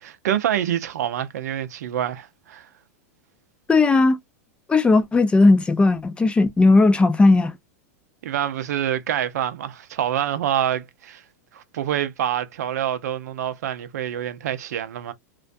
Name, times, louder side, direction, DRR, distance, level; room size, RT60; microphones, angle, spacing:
voice 1, 0.0-2.7 8.2-11.2 11.5-15.1, right 10 dB, 75° right, 0.6 m, -26 dB
voice 2, 3.7-4.2 4.7-7.5, left 3 dB, 10° left, 0.5 m, -16 dB
2.4 x 2.2 x 2.5 m
hypercardioid pair, 115°, 9 cm